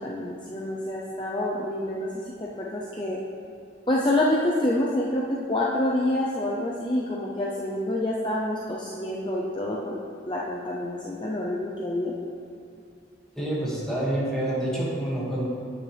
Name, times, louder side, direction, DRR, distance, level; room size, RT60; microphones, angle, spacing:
voice 1, 0.0-3.2 3.9-10.0 10.3-12.1, left 1 dB, 25° left, -4 dB, 0.6 m, -27 dB
voice 2, 13.3-15.4, right 1 dB, 5° left, -8 dB, 2.0 m, -27 dB
9.8 x 8.5 x 3.4 m, 2.5 s
head